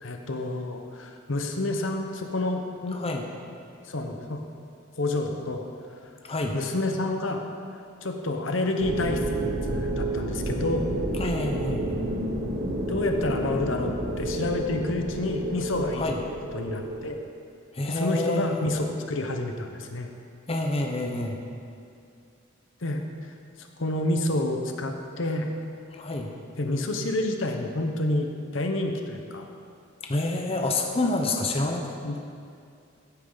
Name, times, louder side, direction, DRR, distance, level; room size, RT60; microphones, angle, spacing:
voice 1, 0.0-3.0 3.9-4.4 5.0-5.7 6.5-7.4 8.0-9.2 9.7-10.9 12.9-16.1 16.5-17.2 17.8-20.1 22.8-25.5 26.6-29.5 32.0-32.2, left 2 dB, 65° left, 4 dB, 0.9 m, -29 dB
voice 2, 2.9-3.3 6.2-6.5 11.2-11.9 16.0-16.2 17.7-18.7 20.5-21.4 25.9-26.3 30.1-32.2, left 2 dB, 30° left, 1 dB, 0.8 m, -28 dB
sound 1, 8.8-17.0, right 1 dB, 85° right, 2.1 m, -30 dB
15.0 x 8.7 x 4.0 m, 2.4 s
head